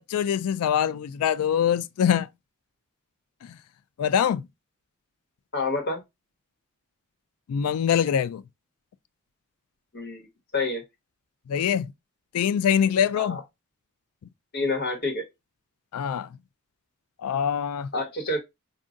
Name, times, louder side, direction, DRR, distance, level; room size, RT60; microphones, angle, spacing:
voice 1, 0.0-2.3 3.4-3.5 4.0-4.4 7.5-8.4 11.5-11.9 12.3-13.4 15.9-16.3 17.2-17.9, left 8 dB, 85° left, 0.3 m, -24 dB
voice 2, 5.5-6.0 9.9-10.3 10.5-10.8 13.1-13.4 14.5-15.2 17.9-18.4, left 3 dB, 45° left, 1.4 m, -28 dB
5.0 x 2.6 x 2.5 m
head